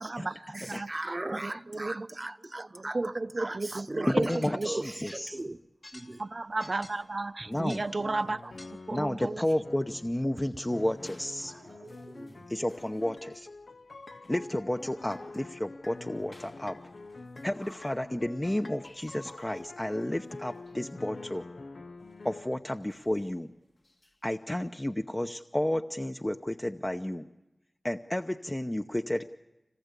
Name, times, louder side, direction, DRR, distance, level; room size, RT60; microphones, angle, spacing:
voice 1, 0.0-0.9 1.3-2.1 2.7-4.7 6.2-8.5 8.9-9.4, right 2 dB, 60° right, 0.8 m, -33 dB
voice 2, 0.5-3.0 3.4-5.6 5.9-6.2 11.5-12.5, right 2 dB, 40° right, 1.0 m, -39 dB
voice 3, 4.1-5.4 7.5-7.8 8.9-11.5 12.5-13.5 14.3-16.8 17.4-21.5 22.2-23.5 24.2-27.3 27.8-29.2, left 1 dB, 20° left, 0.8 m, -31 dB
sound 1, 4.3-5.5 5.8-9.0 9.9-10.2 10.8-13.3 14.1-19.8 20.1-20.9 22.1-22.4 22.9-24.2, left 2 dB, 65° left, 2.6 m, -54 dB
sound 2, 7.9-9.2 9.6-10.4 10.7-22.5, left 3 dB, 80° left, 0.7 m, -47 dB
26.0 x 19.0 x 8.3 m
wide cardioid pair, 40°, 0 cm